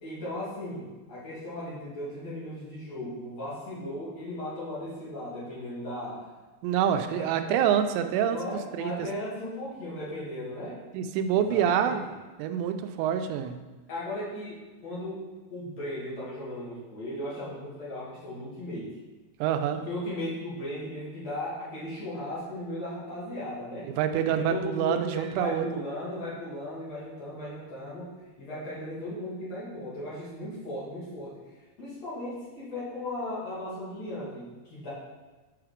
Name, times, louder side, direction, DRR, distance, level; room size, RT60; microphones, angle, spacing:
voice 1, 0.0-6.3 6.9-7.6 8.2-10.8 11.3-12.0 13.9-15.2 15.5-18.9 19.7-23.9 24.3-28.1 28.4-31.3 31.8-34.9, left 1 dB, 45° left, -9 dB, 3.2 m, -37 dB
voice 2, 6.6-8.9 10.9-12.0 12.4-13.6 19.4-19.8 24.0-25.6, right 9 dB, 90° right, 8 dB, 2.9 m, -26 dB
8.1 x 5.8 x 5.0 m, 1.3 s
omnidirectional pair, 5.0 m